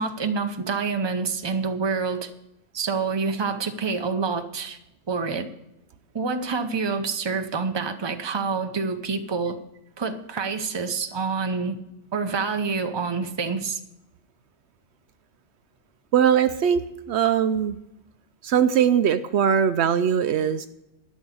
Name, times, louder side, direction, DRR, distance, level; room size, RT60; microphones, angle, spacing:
voice 1, 0.0-2.3 2.7-4.8 5.1-5.5 6.1-9.6 10.0-11.8 12.1-13.8, right 4 dB, 25° right, 7 dB, 0.8 m, -27 dB
voice 2, 16.1-17.8 18.4-20.7, right 8 dB, 70° right, 11 dB, 0.8 m, -21 dB
12.5 x 6.2 x 8.4 m, 0.88 s
omnidirectional pair, 1.2 m